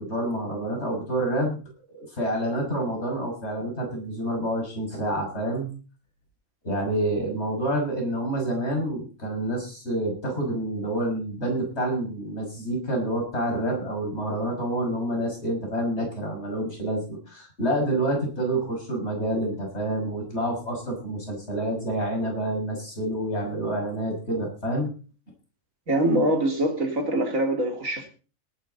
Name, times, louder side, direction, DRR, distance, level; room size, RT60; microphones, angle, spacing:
voice 1, 0.0-1.6 1.9-5.7 6.6-24.9, right 1 dB, 55° left, 1 dB, 6.6 m, -28 dB
voice 2, 25.9-28.1, right 1 dB, 85° right, 3 dB, 3.4 m, -24 dB
18.5 x 10.5 x 4.0 m, 0.36 s
omnidirectional pair, 1.4 m